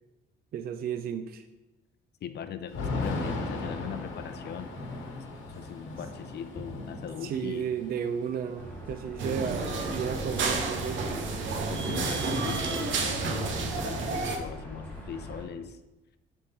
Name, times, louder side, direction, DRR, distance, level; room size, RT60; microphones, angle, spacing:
voice 1, 0.5-1.4 7.2-11.1, right 8 dB, 50° right, 9 dB, 0.4 m, -33 dB
voice 2, 2.2-4.7 5.6-7.7 11.7-15.8, left 8 dB, 55° left, 10 dB, 0.5 m, -40 dB
Thunder / Rain, 2.7-10.6 10.9-11.0 11.2-12.6, left 2 dB, 85° left, 1.1 m, -38 dB
sound 1, 8.5-15.5, equal, 10° left, 1.6 m, -42 dB
sound 2, 9.2-14.4, right 3 dB, 75° right, 0.8 m, -30 dB
6.4 x 3.6 x 4.2 m, 1.0 s
cardioid pair, 90°, 20 cm